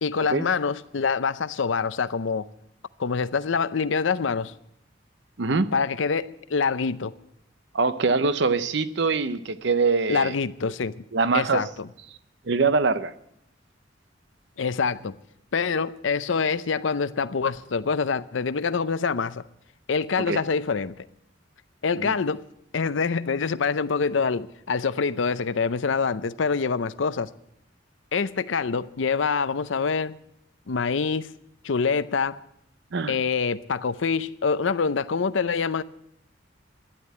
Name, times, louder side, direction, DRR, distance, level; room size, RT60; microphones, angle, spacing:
voice 1, 0.0-2.5 3.0-4.5 5.7-7.1 10.1-11.0 11.3-11.9 14.6-15.2 15.5-19.4 19.9-21.1 21.8-22.4 22.7-27.3 28.1-30.2 30.7-31.3 31.6-32.4 33.1-35.8, left 5 dB, 75° left, 0.6 m, -25 dB
voice 2, 5.4-5.7 7.7-10.3 11.1-11.7 12.5-13.1 20.2-20.4 22.0-22.1 32.9-33.1, right 4 dB, 65° right, 0.7 m, -23 dB
13.0 x 10.5 x 8.3 m
head